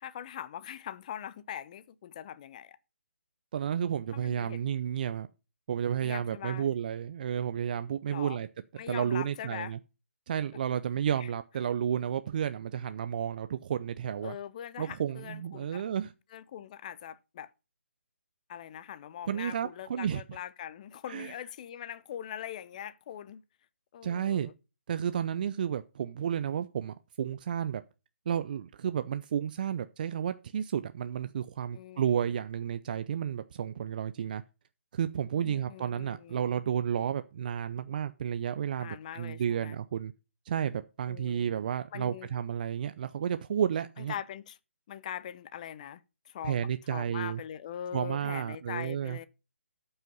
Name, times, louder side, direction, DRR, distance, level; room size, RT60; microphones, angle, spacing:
voice 1, 0.0-2.8 4.1-4.6 6.0-6.7 8.1-8.4 8.8-9.7 11.2-11.3 14.2-15.8 16.3-17.5 18.5-23.4 23.9-24.5 31.7-32.3 35.4-36.5 38.8-39.8 41.1-41.5 41.9-42.3 44.0-44.6 44.9-49.3, left 10 dB, 35° left, 0.7 m, -42 dB
voice 2, 3.5-5.3 5.7-8.5 8.9-9.8 10.3-14.3 14.8-16.1 19.3-20.2 21.1-21.4 24.0-24.5 24.9-27.8 28.3-34.4 34.9-40.1 40.5-44.1 46.4-47.4 47.9-49.2, right 9 dB, 40° right, 0.5 m, -32 dB
12.0 x 5.6 x 5.3 m
figure-of-eight pair, 145°, 7 cm